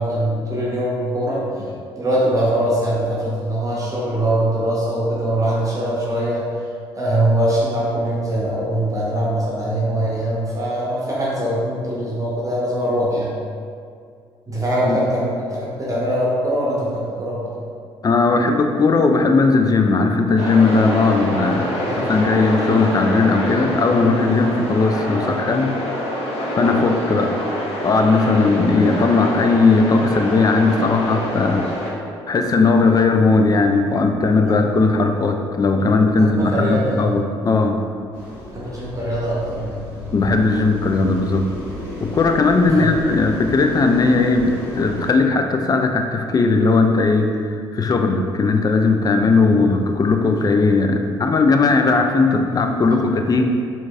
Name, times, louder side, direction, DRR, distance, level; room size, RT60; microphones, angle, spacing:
voice 1, 0.0-1.4 2.0-6.4 6.9-13.3 14.5-17.4 21.7-22.2 36.2-37.1 38.5-39.9 42.7-42.9 49.5-49.6, right 1 dB, 25° right, -6 dB, 0.9 m, -22 dB
voice 2, 18.0-21.7 22.0-25.7 26.6-27.3 27.8-31.6 32.3-37.8 40.1-41.5 42.0-53.5, left 3 dB, 30° left, 5 dB, 0.4 m, -17 dB
sound 1, 20.4-31.9, equal, 50° left, 0.8 m, -26 dB
sound 2, 38.1-45.1, left 1 dB, 90° left, 1.0 m, -32 dB
4.3 x 2.8 x 2.3 m, 2.2 s
hypercardioid pair, 50°, 14 cm